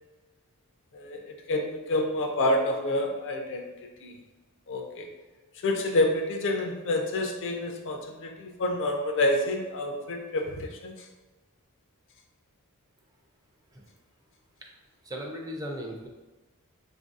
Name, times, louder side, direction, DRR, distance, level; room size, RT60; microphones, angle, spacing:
voice 1, 0.9-4.2 4.7-5.1 5.6-11.1, left 1 dB, 60° left, 4 dB, 0.4 m, -28 dB
voice 2, 15.0-16.1, equal, 15° right, 0 dB, 0.4 m, -37 dB
3.8 x 2.6 x 2.4 m, 1.2 s
head